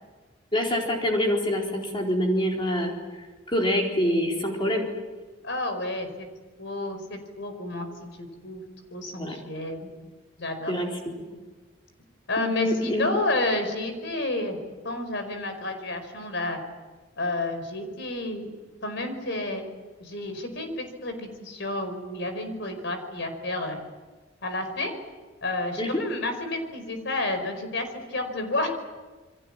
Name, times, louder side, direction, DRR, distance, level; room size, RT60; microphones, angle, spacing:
voice 1, 0.5-2.9 3.5-4.9 9.2-9.4 10.7-11.4 12.4-13.1 25.8-26.0, left 1 dB, 25° left, -1 dB, 4.3 m, -26 dB
voice 2, 5.4-6.3 6.6-8.6 8.9-9.9 10.4-10.7 12.3-14.6 14.8-16.6 17.2-18.5 18.8-19.6 20.0-23.8 24.4-24.9 25.4-28.8, left 2 dB, 60° left, 7 dB, 4.9 m, -30 dB
28.5 x 23.0 x 7.6 m, 1.3 s
head